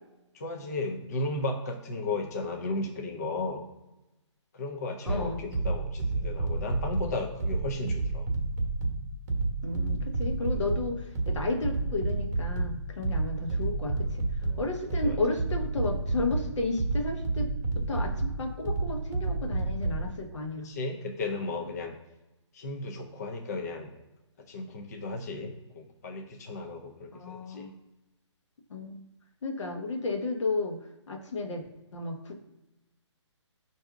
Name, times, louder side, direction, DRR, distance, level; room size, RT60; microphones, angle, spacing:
voice 1, 0.3-3.6 4.5-8.3 10.4-10.5 14.4-14.6 15.0-15.2 20.6-22.0 22.5-23.9 24.5-27.7, left 2 dB, 35° left, 2 dB, 0.4 m, -35 dB
voice 2, 5.0-5.4 9.6-14.2 14.6-17.5 17.7-20.7 27.1-27.7 28.7-29.1 29.4-30.8 31.1-31.6 31.9-32.4, left 3 dB, 75° left, 4 dB, 0.9 m, -33 dB
sound 1, 5.1-20.1, right 3 dB, 35° right, 0.9 m, -30 dB
4.6 x 2.6 x 3.5 m, 1.0 s
hypercardioid pair, 170°, 16 cm